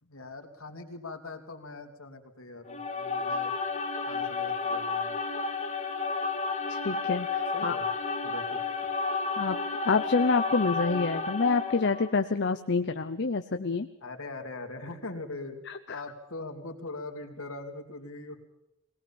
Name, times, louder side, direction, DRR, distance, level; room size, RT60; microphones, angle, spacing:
voice 1, 0.0-3.5 4.1-5.2 7.5-7.9 8.2-8.6 14.0-15.6 15.9-18.5, left 2 dB, 70° left, 4 dB, 2.9 m, -41 dB
sound 1, 2.7-12.1, left 4 dB, 30° left, 1.6 m, -31 dB
voice 2, 6.7-7.8 9.4-9.6 9.9-13.9 15.7-15.8, left 4 dB, 50° left, 8 dB, 0.7 m, -27 dB
22.0 x 18.5 x 7.3 m, 0.93 s
head